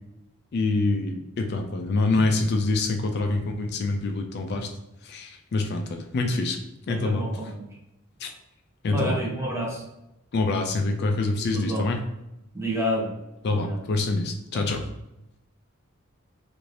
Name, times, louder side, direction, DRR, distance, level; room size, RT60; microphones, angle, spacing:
voice 1, 0.5-4.7 5.0-6.6 6.9-7.3 8.2-8.3 8.8-9.2 10.3-12.0 13.4-14.9, left 3 dB, 50° left, 4 dB, 0.3 m, -25 dB
voice 2, 6.9-7.7 8.9-9.8 11.5-11.9 12.5-13.1 13.5-13.8 14.5-14.7, equal, 15° right, -2 dB, 0.6 m, -29 dB
2.7 x 2.5 x 3.1 m, 0.89 s
head